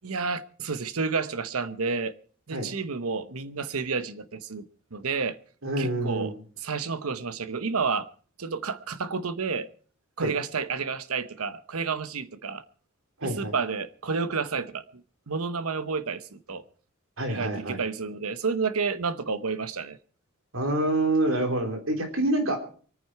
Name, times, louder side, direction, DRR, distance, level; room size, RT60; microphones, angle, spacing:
voice 1, 0.0-2.1 2.5-5.4 5.8-8.1 8.4-9.7 10.2-12.6 13.2-16.6 17.3-20.0, right 5 dB, 85° right, 1.0 m, -30 dB
voice 2, 5.6-6.3 10.2-10.3 13.2-13.5 17.2-17.8 20.5-22.6, right 1 dB, 65° right, 3.3 m, -26 dB
24.5 x 9.5 x 4.6 m
head